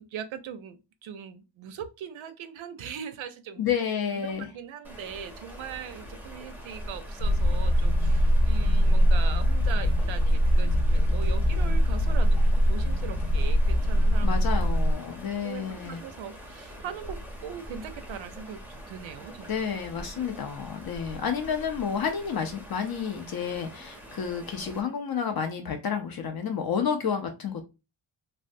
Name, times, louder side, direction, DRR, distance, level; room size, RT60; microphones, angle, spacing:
voice 1, 0.0-3.6 4.1-14.3 15.4-19.6 20.1-20.2, right 8 dB, 70° right, 0.6 m, -40 dB
voice 2, 3.6-4.5 14.2-16.0 19.5-27.6, left 7 dB, 50° left, 0.5 m, -30 dB
sound 1, 4.8-24.8, equal, 5° right, 0.5 m, -44 dB
sound 2, 7.2-14.9, equal, 75° left, 0.8 m, -22 dB
3.2 x 2.2 x 2.5 m
wide cardioid pair, 160°, 48 cm